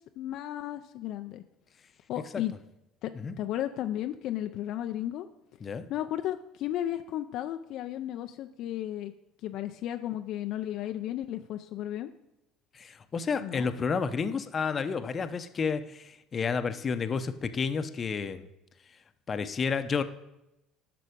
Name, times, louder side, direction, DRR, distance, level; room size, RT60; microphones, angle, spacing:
voice 1, 0.2-1.4 2.1-2.5 3.0-3.1 3.4-5.3 5.9-9.1 9.4-12.1 13.4-13.7, left 12 dB, 65° left, 7 dB, 0.5 m, -34 dB
voice 2, 12.7-18.4 19.3-20.0, left 5 dB, 35° left, 10 dB, 0.7 m, -31 dB
10.5 x 6.0 x 5.1 m, 0.91 s
supercardioid pair, 80°, 0 cm